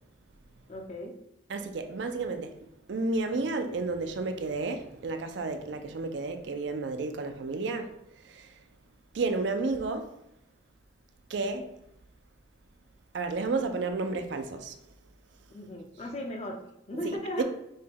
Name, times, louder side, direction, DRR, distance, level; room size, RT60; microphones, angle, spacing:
voice 1, 0.7-1.2 15.5-16.6 16.9-17.4, left 1 dB, 35° left, 0.5 m, -36 dB
voice 2, 1.5-2.6 2.9-8.6 9.1-10.1 11.3-11.7 13.1-14.8 17.0-17.4, right 3 dB, 70° right, 0.4 m, -32 dB
5.4 x 2.2 x 3.4 m
head